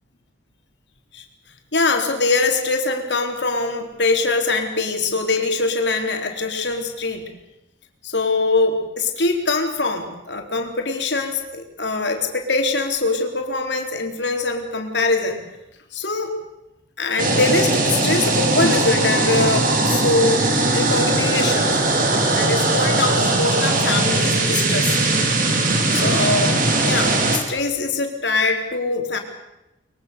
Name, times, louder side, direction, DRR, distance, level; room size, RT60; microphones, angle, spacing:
voice 1, 1.7-7.3 8.0-15.4 15.9-16.3 17.0-20.5 20.7-21.7 22.3-25.0 25.9-29.2, left 3 dB, 70° left, 4 dB, 4.0 m, -23 dB
sound 1, 17.2-27.4, right 2 dB, 50° right, 4.8 m, -19 dB
24.0 x 23.0 x 6.9 m, 0.91 s
head